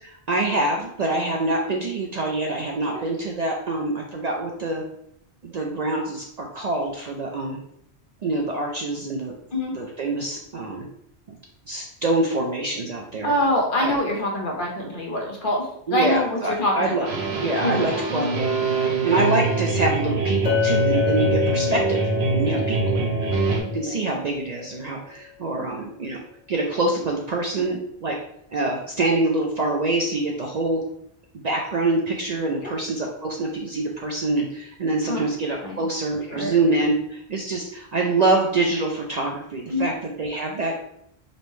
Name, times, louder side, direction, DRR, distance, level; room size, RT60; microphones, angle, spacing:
voice 1, 0.3-4.8 5.4-7.6 8.2-9.3 9.7-10.8 11.7-13.3 13.8-14.0 15.9-17.1 17.4-18.3 18.8-22.0 22.3-23.1 23.7-26.2 26.5-28.1 28.5-30.8 31.4-40.7, right 2 dB, 55° right, 0 dB, 0.5 m, -25 dB
voice 2, 13.2-17.3 17.6-18.0 22.5-22.7 23.8-24.0 27.6-27.7 32.6-32.8 35.1-35.2 35.6-35.8 36.3-36.5 39.7-39.9, left 1 dB, 55° left, 0 dB, 0.9 m, -25 dB
sound 1, 17.0-23.6, right 4 dB, 75° right, 0.9 m, -24 dB
Chink clink, 20.5-24.7, left 12 dB, 85° left, 1.0 m, -28 dB
5.3 x 2.1 x 3.1 m, 0.72 s
omnidirectional pair, 1.1 m